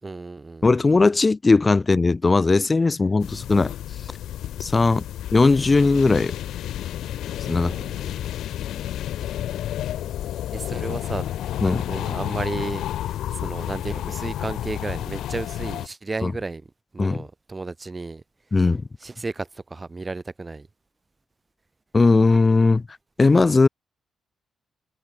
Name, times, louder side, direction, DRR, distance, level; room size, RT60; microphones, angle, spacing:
voice 1, 0.0-0.8 7.5-8.3 10.5-18.2 19.0-20.7, right 3 dB, 25° right, 4.2 m, -33 dB
voice 2, 0.6-3.7 4.6-5.0 5.3-6.3 7.5-7.7 11.6-11.8 16.2-16.3 17.0-17.2 18.5-18.8 21.9-22.8 23.2-23.7, left 3 dB, 25° left, 4.1 m, -18 dB
sound 1, 3.2-15.9, left 12 dB, 85° left, 1.9 m, -31 dB
cardioid pair, 100°, 0 cm